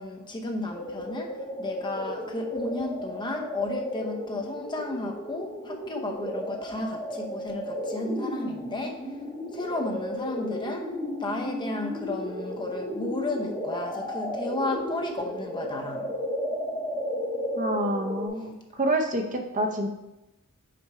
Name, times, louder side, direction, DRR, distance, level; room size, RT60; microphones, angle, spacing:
voice 1, 0.0-9.0 9.5-10.9 11.2-16.1, left 2 dB, 20° left, 2 dB, 0.6 m, -33 dB
sound 1, 0.7-18.3, equal, 5° left, 1.2 m, -34 dB
voice 2, 17.6-19.9, right 1 dB, 35° right, 4 dB, 0.6 m, -27 dB
5.9 x 4.4 x 4.7 m, 0.97 s
head